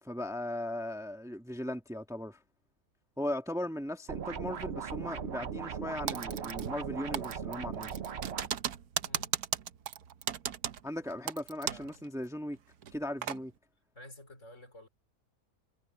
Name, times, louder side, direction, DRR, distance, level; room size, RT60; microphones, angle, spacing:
voice 1, 0.0-2.4 3.2-7.9 10.8-12.6 12.9-13.5, left 1 dB, ahead, 1.8 m, -38 dB
sound 1, 4.1-8.5, right 7 dB, 50° right, 1.1 m, -38 dB
Typing, 6.1-6.9 7.1-12.0 12.2-12.3 12.8-13.4, right 9 dB, 75° right, 1.4 m, -36 dB
voice 2, 9.0-9.3 11.6-12.1 13.9-14.9, left 1 dB, 50° left, 4.2 m, -51 dB
omnidirectional pair, 1.6 m